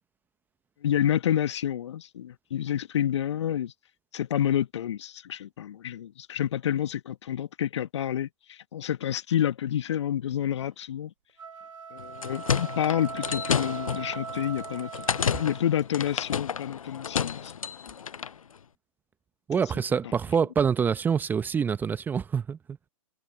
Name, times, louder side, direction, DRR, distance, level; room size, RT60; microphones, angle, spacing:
voice 1, 0.8-3.7 4.1-11.1 11.9-17.6, left 10 dB, 50° left, 1.5 m, -29 dB
sound 1, 11.3-15.9, right 6 dB, 65° right, 6.4 m, -40 dB
sound 2, 12.0-18.4, left 7 dB, 70° left, 0.7 m, -31 dB
voice 2, 19.5-22.6, right 6 dB, 10° right, 0.9 m, -26 dB
figure-of-eight pair, 125°, 18 cm